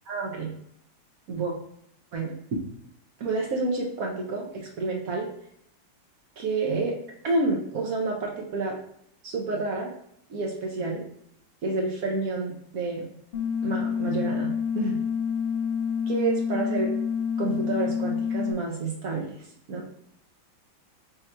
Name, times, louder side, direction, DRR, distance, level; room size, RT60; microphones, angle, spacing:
voice 1, 0.1-0.5 1.3-1.5 2.1-2.6 3.2-5.3 6.4-7.0 7.2-8.8 9.2-9.9 10.3-11.0 11.6-13.1 13.6-15.0 16.1-16.9 17.4-19.8, right 3 dB, 70° right, -1 dB, 0.8 m, -29 dB
sound 1, 13.3-18.5, left 7 dB, 75° left, 0.6 m, -28 dB
5.0 x 2.3 x 4.3 m, 0.71 s
omnidirectional pair, 2.2 m